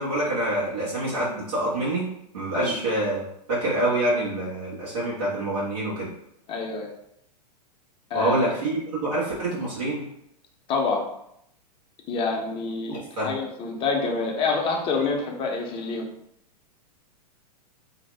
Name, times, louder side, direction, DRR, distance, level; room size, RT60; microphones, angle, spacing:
voice 1, 0.0-2.1 2.3-3.2 3.5-6.1 8.1-10.0 12.9-13.3, right 1 dB, 70° right, -9 dB, 1.2 m, -26 dB
voice 2, 6.5-6.9 8.1-8.4 10.7-11.1 12.1-16.1, left 4 dB, 25° left, 0 dB, 0.6 m, -27 dB
2.7 x 2.0 x 3.2 m, 0.78 s
figure-of-eight pair, 105°, 21 cm